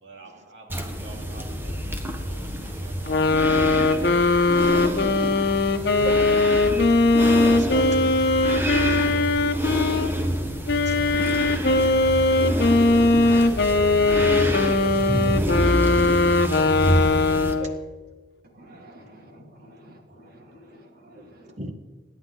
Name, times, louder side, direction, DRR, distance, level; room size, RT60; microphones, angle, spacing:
voice 1, 0.0-4.2 5.7-6.0 6.5-6.7 10.1-10.3 11.1-11.3 11.7-11.8 12.1-12.4 13.1-13.4, right 2 dB, 80° right, 0 dB, 3.1 m, -50 dB
sound 1, 0.7-17.5, equal, 15° right, 1.4 m, -27 dB
sound 2, 3.1-10.1 10.7-17.8, left 3 dB, 65° left, 1.0 m, -20 dB
voice 2, 7.3-8.3 10.9-11.3 11.9-12.2 13.1-13.6 17.1-17.8 21.2-21.3 21.6-21.7, right 1 dB, 40° right, 6 dB, 1.7 m, -39 dB
voice 3, 18.5-21.5, equal, 55° right, 1 dB, 2.7 m, -49 dB
27.0 x 10.5 x 3.9 m, 1.4 s
head